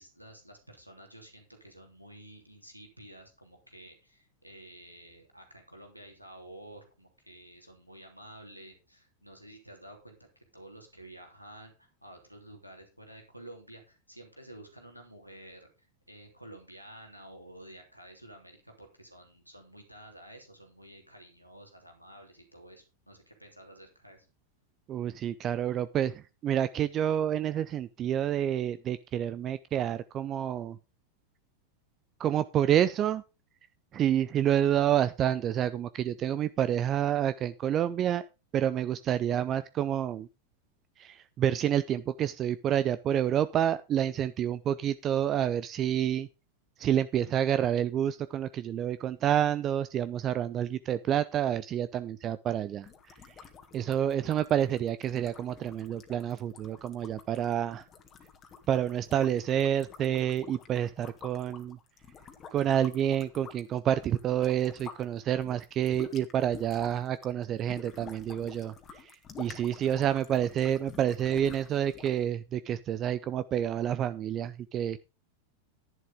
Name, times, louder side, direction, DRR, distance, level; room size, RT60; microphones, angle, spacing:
voice 1, 0.0-24.3, right 1 dB, 90° right, 3 dB, 3.1 m, -51 dB
voice 2, 24.9-30.8 32.2-33.2 33.9-38.2 38.5-40.3 41.0-46.3 46.8-52.9 53.7-57.8 58.7-61.8 62.5-69.1 69.4-75.0, right 10 dB, 30° right, 14 dB, 0.5 m, -28 dB
sound 1, 52.8-65.0 65.3-72.2, left 6 dB, 25° left, 1.8 m, -50 dB
11.5 x 11.0 x 3.6 m, 0.29 s
figure-of-eight pair, 90°, 0 cm